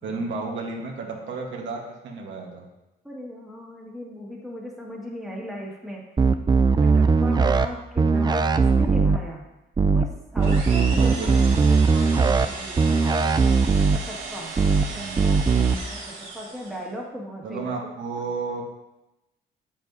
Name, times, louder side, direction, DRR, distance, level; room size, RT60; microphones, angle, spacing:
voice 1, 0.0-2.6 11.0-11.6 14.9-15.3 17.4-18.6, right 4 dB, 70° right, -1 dB, 1.3 m, -32 dB
voice 2, 3.0-6.0 6.8-9.4 9.9-13.0 13.9-17.7, equal, ahead, -4 dB, 1.9 m, -37 dB
sound 1, 6.2-7.7 8.0-9.2 9.8-10.0 10.4-12.5 12.8-14.0 14.6-14.8 15.2-15.7, right 4 dB, 20° right, 0.4 m, -19 dB
sound 2, 10.4-16.9, right 3 dB, 90° right, 1.6 m, -36 dB
7.4 x 7.1 x 2.7 m, 0.95 s
cardioid pair, 90°, 20 cm